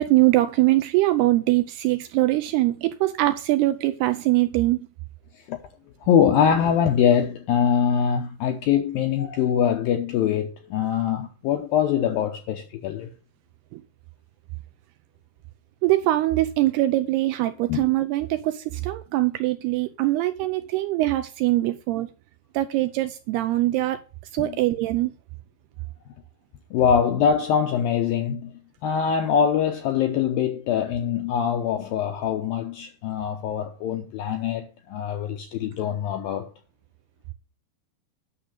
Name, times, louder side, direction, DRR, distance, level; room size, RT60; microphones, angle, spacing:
voice 1, 0.0-4.8 13.7-13.8 15.8-22.1 22.5-24.0 24.3-25.1, right 17 dB, 80° right, 2.4 m, -22 dB
voice 2, 6.0-13.1 17.7-17.9 24.4-24.6 26.7-36.5, left 8 dB, 80° left, 2.1 m, -23 dB
10.0 x 6.6 x 6.7 m
omnidirectional pair, 5.2 m